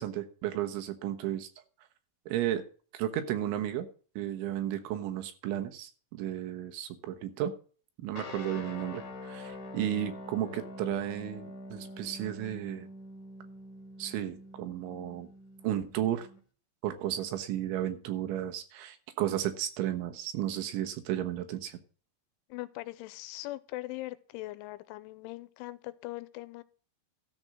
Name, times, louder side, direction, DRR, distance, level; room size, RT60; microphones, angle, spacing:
voice 1, 0.0-1.5 2.3-2.6 2.9-3.9 4.2-7.5 8.0-12.9 14.0-15.3 15.6-16.3 16.8-21.8, right 11 dB, 80° right, 3.6 m, -33 dB
sound 1, 8.2-16.4, left 2 dB, 50° left, 3.0 m, -45 dB
voice 2, 22.5-26.6, left 18 dB, 85° left, 3.1 m, -41 dB
13.5 x 4.5 x 7.6 m
omnidirectional pair, 5.5 m